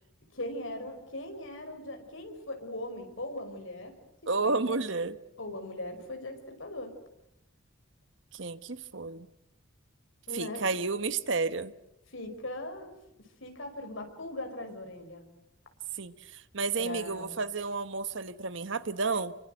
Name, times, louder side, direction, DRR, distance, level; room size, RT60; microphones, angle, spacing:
voice 1, 0.3-4.0 4.4-4.7 5.4-6.9 10.3-10.7 12.1-13.0 13.4-15.2 16.8-17.3, left 1 dB, 65° left, 5.4 m, -39 dB
voice 2, 4.3-5.2 8.3-9.3 10.3-11.7 16.0-19.3, right 4 dB, 60° right, 1.1 m, -31 dB
28.0 x 24.0 x 7.9 m
head